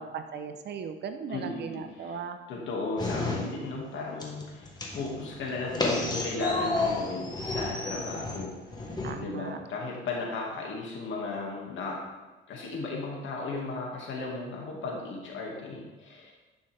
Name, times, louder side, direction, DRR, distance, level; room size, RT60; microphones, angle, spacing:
voice 1, 0.0-2.4 9.0-9.6, right 6 dB, 55° right, 7 dB, 0.8 m, -37 dB
voice 2, 1.3-2.2 2.5-12.0 12.5-16.3, left 3 dB, 70° left, -2 dB, 2.2 m, -36 dB
sound 1, 3.0-3.9 4.2-9.1, left 2 dB, 20° left, 1.4 m, -31 dB
10.5 x 5.5 x 3.5 m, 1.2 s
cardioid pair, 110°, 20 cm